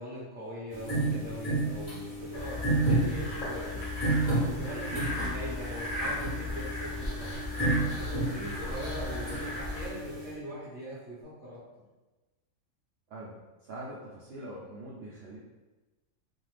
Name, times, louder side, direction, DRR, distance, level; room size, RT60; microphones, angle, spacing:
voice 1, 0.0-7.3 8.0-11.6, equal, 10° right, -9 dB, 1.0 m, -41 dB
sound 1, 0.7-10.3, right 2 dB, 20° left, 1.0 m, -32 dB
sound 2, 2.3-9.9, left 2 dB, 40° left, 0.8 m, -36 dB
voice 2, 4.8-5.1 13.1-15.4, right 1 dB, 65° right, -7 dB, 0.7 m, -43 dB
2.5 x 2.4 x 3.3 m, 1.1 s
omnidirectional pair, 1.4 m